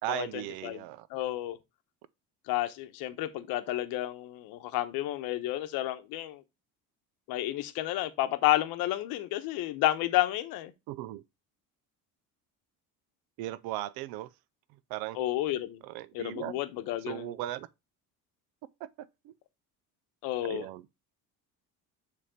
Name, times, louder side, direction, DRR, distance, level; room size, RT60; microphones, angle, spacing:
voice 1, 0.0-1.1 10.9-11.2 13.4-14.3 14.9-15.2 15.8-16.5 17.1-17.7 18.8-19.3 20.4-20.8, right 15 dB, 80° right, 0.6 m, -37 dB
voice 2, 1.1-1.6 2.5-6.4 7.3-10.7 15.1-15.8 16.1-17.3 20.2-20.6, left 15 dB, 75° left, 1.0 m, -31 dB
6.9 x 3.5 x 4.9 m
cardioid pair, 130°, 36 cm